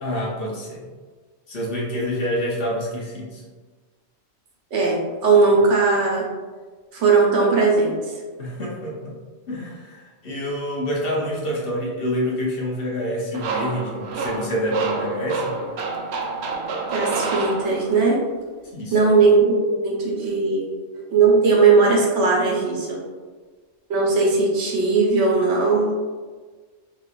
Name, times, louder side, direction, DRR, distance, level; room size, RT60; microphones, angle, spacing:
voice 1, 0.0-0.9 1.5-3.4 8.4-9.2 9.5-15.6 18.7-19.1, equal, 55° left, -4 dB, 1.0 m, -27 dB
voice 2, 4.7-6.3 6.9-8.1 16.9-18.2 18.9-20.7 21.1-23.0 23.9-25.9, right 4 dB, 90° right, -2 dB, 1.2 m, -18 dB
sound 1, 13.3-18.1, right 4 dB, 70° right, 0.8 m, -28 dB
3.9 x 2.9 x 2.4 m, 1.4 s
omnidirectional pair, 1.2 m